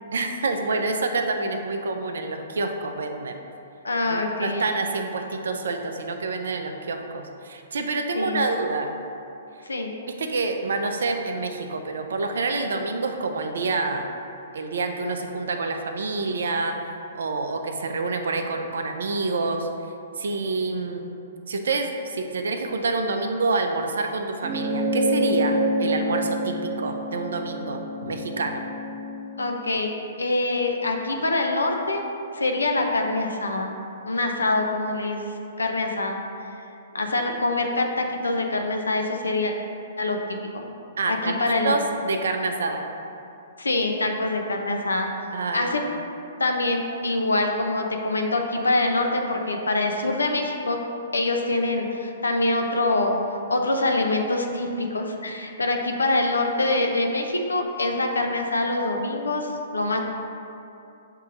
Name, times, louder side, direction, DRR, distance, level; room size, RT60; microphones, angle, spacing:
voice 1, 0.1-3.4 4.1-8.9 10.2-14.1 14.5-16.8 17.1-19.7 20.2-21.1 21.5-27.8 28.1-28.6 41.0-42.9 45.3-45.9, right 3 dB, 65° right, 5 dB, 0.4 m, -27 dB
voice 2, 3.8-4.7 8.1-8.4 9.7-9.9 29.4-29.9 30.2-32.0 32.3-33.7 34.1-35.2 35.6-36.2 36.9-39.5 40.0-40.2 40.5-40.6 41.1-41.7 43.6-45.1 45.5-45.8 46.4-50.8 51.1-53.2 53.5-60.0, left 2 dB, 80° left, 3 dB, 0.5 m, -24 dB
sound 1, 24.4-29.2, equal, 35° right, 0.7 m, -27 dB
7.5 x 2.7 x 2.5 m, 2.7 s
figure-of-eight pair, 115°, 0 cm